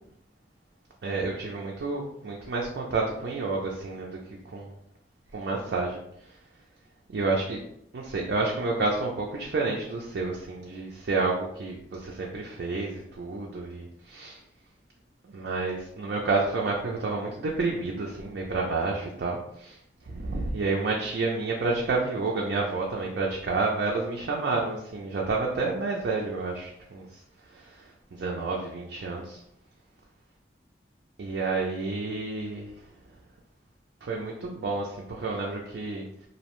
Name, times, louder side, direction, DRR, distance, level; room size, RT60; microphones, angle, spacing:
voice 1, 1.0-4.7 5.3-6.0 7.1-7.6 7.9-14.4 15.2-19.8 20.0-27.1 27.5-29.4 31.2-32.7 34.0-36.1, right 3 dB, 70° right, -2 dB, 0.4 m, -30 dB
2.6 x 2.1 x 2.9 m, 0.72 s
head